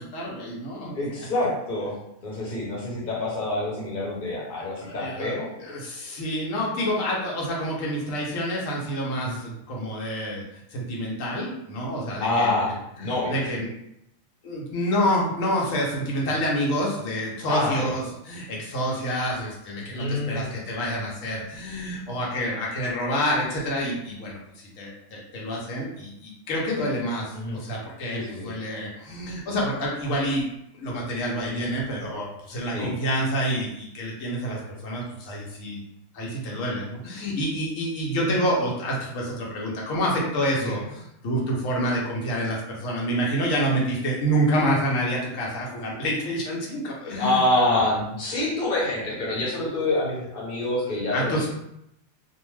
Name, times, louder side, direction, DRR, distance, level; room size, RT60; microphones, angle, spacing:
voice 1, 0.0-1.0 4.9-5.3 5.6-10.4 10.7-12.5 13.0-13.7 14.4-24.4 24.8-35.8 36.1-47.4 51.1-51.5, equal, 90° left, -3 dB, 1.1 m, -28 dB
voice 2, 0.9-2.0 2.2-5.5 9.2-9.4 12.2-13.4 17.5-17.9 19.9-20.5 27.3-27.6 28.1-28.5 31.5-31.6 32.7-32.9 38.2-38.4 40.6-40.8 47.2-51.5, left 2 dB, 45° left, -5 dB, 0.9 m, -26 dB
2.5 x 2.2 x 3.1 m, 0.79 s
omnidirectional pair, 1.3 m